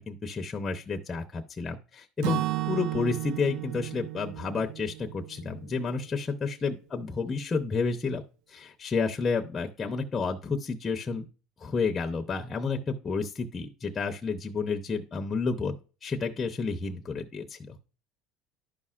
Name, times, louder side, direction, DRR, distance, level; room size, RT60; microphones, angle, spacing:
voice 1, 0.0-8.2 8.5-11.2 11.6-15.8 16.0-17.7, left 4 dB, 25° left, 4 dB, 0.7 m, -30 dB
Acoustic guitar / Strum, 2.2-6.2, right 16 dB, 70° right, 0.4 m, -34 dB
11.5 x 5.4 x 2.5 m, 0.34 s
supercardioid pair, 110°, 0 cm